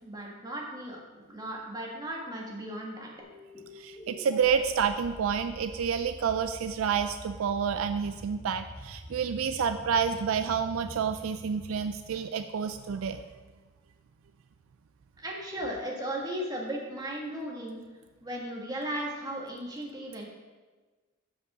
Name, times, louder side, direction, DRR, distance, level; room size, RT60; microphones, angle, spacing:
voice 1, 0.0-3.1 15.2-17.8 18.2-20.3, right 1 dB, 20° right, -2 dB, 1.6 m, -36 dB
sound 1, 3.2-12.5, equal, 25° left, 2.0 m, -47 dB
voice 2, 3.7-13.2, right 7 dB, 70° right, 10 dB, 0.4 m, -29 dB
7.6 x 5.4 x 6.1 m, 1.3 s
head